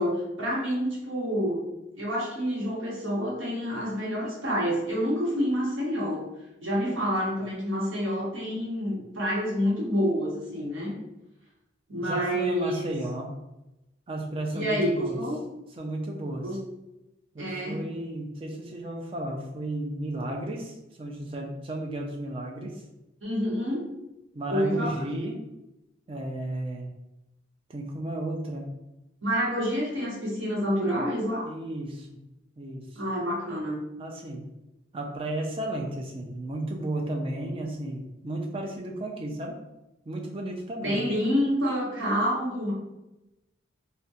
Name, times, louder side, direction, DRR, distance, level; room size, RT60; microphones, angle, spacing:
voice 1, 0.0-1.7 2.0-6.2 6.6-10.9 11.9-12.9 14.5-15.4 16.4-16.6 17.4-17.8 23.2-23.9 24.5-24.9 25.1-25.3 29.2-31.5 32.9-33.8 40.8-42.7, equal, 80° right, -5 dB, 1.0 m, -28 dB
voice 2, 12.0-13.3 14.1-15.2 15.8-16.6 17.3-22.8 24.3-25.5 26.1-26.9 27.7-28.7 31.4-32.2 32.6-33.0 34.0-34.4 34.9-39.6 40.1-41.0, right 1 dB, 25° right, 1 dB, 0.3 m, -33 dB
2.8 x 2.1 x 2.3 m, 0.95 s
head